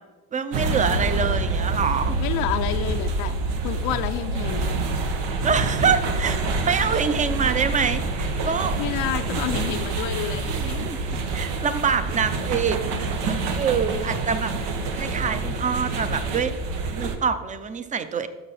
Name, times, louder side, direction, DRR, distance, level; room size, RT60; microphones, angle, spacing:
voice 1, 0.3-2.2 5.4-8.8 10.5-11.0 11.3-14.5 14.9-16.5 16.9-18.3, right 6 dB, 20° right, 12 dB, 0.6 m, -25 dB
sound 1, 0.5-17.2, right 3 dB, 85° right, 1.3 m, -27 dB
voice 2, 2.2-3.4 3.6-4.8 8.4-11.0, left 12 dB, 75° left, 8 dB, 0.6 m, -29 dB
11.5 x 6.7 x 4.2 m, 1.3 s
cardioid pair, 125°, 37 cm